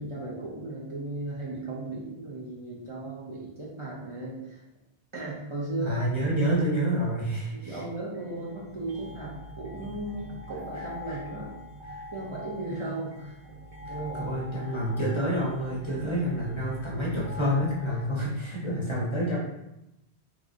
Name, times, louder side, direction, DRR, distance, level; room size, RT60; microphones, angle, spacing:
voice 1, 0.0-4.6 5.1-6.0 6.4-6.5 7.5-11.5 12.1-13.4 13.9-14.4 17.9-18.3 18.6-18.8, right 2 dB, 40° right, -6 dB, 0.5 m, -36 dB
voice 2, 5.8-7.8 10.7-11.2 11.9-12.0 14.2-19.4, equal, 35° left, -6 dB, 0.6 m, -28 dB
sound 1, 8.1-18.1, left 1 dB, 65° right, 0.8 m, -43 dB
3.0 x 2.4 x 2.5 m, 0.90 s
omnidirectional pair, 1.1 m